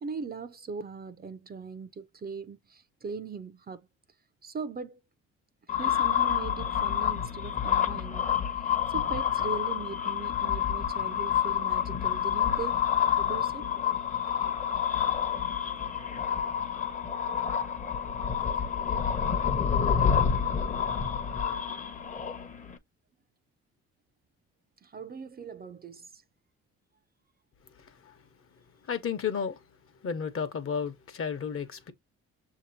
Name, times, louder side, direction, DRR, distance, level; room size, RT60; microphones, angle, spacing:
voice 1, 0.0-3.9 4.4-5.0 5.8-8.3 8.9-12.9 13.2-13.7 24.8-26.2, right 5 dB, 30° right, 0.5 m, -40 dB
sound 1, 5.7-22.8, left 8 dB, 25° left, 0.8 m, -28 dB
voice 2, 28.9-29.6 30.0-31.9, left 6 dB, 45° left, 1.0 m, -32 dB
6.8 x 2.9 x 2.7 m
cardioid pair, 90°, 30 cm